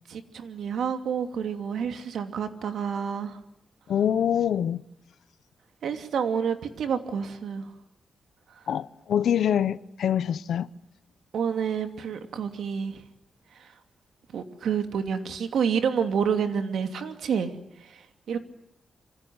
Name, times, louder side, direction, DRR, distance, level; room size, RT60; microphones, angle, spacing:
voice 1, 0.1-3.4 5.8-7.7 11.3-13.0 14.3-17.5 17.9-18.4, right 7 dB, 75° right, 2.8 m, -29 dB
voice 2, 3.9-4.8 8.7-10.7, left 9 dB, 75° left, 1.0 m, -25 dB
26.5 x 25.5 x 8.0 m
wide cardioid pair, 165°, 0 cm